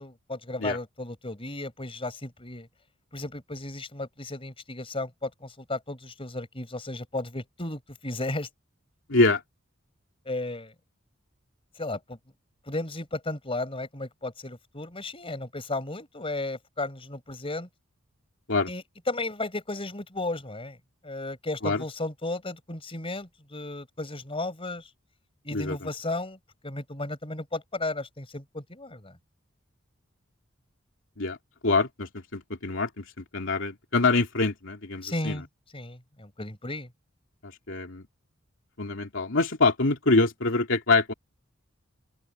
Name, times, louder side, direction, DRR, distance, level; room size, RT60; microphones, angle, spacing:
voice 1, 0.0-2.7 3.1-8.5 10.3-10.7 11.8-12.2 12.7-17.7 18.7-20.8 21.0-24.9 25.4-26.4 26.6-29.2 35.0-35.4 35.7-36.9, left 2 dB, 30° left, 5.3 m, -34 dB
voice 2, 9.1-9.4 18.5-18.7 21.6-21.8 25.5-25.9 31.2-31.4 31.6-35.4 37.4-38.1 38.8-41.1, left 3 dB, 65° left, 3.0 m, -25 dB
open air
head